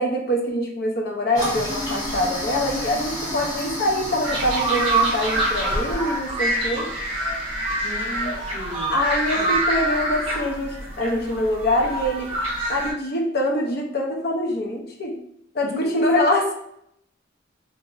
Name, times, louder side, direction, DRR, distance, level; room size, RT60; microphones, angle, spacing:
voice 1, 0.0-6.9 8.9-12.3 12.7-15.2 15.5-16.5, left 1 dB, 50° left, 1 dB, 0.5 m, -24 dB
Toilet flush, 1.4-6.6, equal, 20° left, 0.9 m, -31 dB
sound 1, 4.2-12.9, right 1 dB, 30° right, 0.8 m, -25 dB
voice 2, 7.7-8.9 9.3-9.5 15.6-16.0, left 1 dB, 5° left, -12 dB, 1.4 m, -34 dB
2.9 x 2.5 x 2.5 m, 0.73 s
head